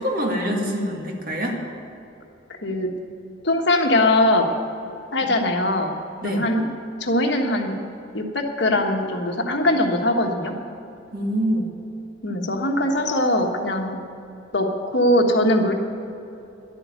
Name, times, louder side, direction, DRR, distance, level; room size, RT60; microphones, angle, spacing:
voice 1, 0.0-1.6 6.2-6.4 11.1-11.7, equal, 45° right, 0 dB, 2.2 m, -25 dB
voice 2, 2.5-2.9 3.4-4.5 5.1-5.9 6.2-6.7 7.0-7.8 8.1-10.5 12.2-14.0 14.5-15.7, left 1 dB, 60° left, 3 dB, 1.5 m, -21 dB
11.5 x 8.9 x 9.1 m, 2.8 s
head